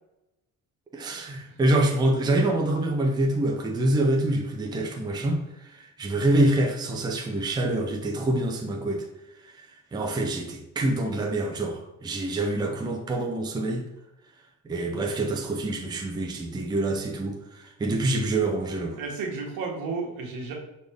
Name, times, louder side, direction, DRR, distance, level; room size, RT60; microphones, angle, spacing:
voice 1, 0.9-9.1 9.6-9.7 9.9-13.8 14.6-19.0, right 1 dB, 10° right, 2 dB, 0.6 m, -26 dB
voice 2, 19.0-20.5, right 4 dB, 75° right, 0 dB, 1.5 m, -32 dB
6.5 x 4.2 x 3.5 m, 0.95 s
cardioid pair, 155°, 35 cm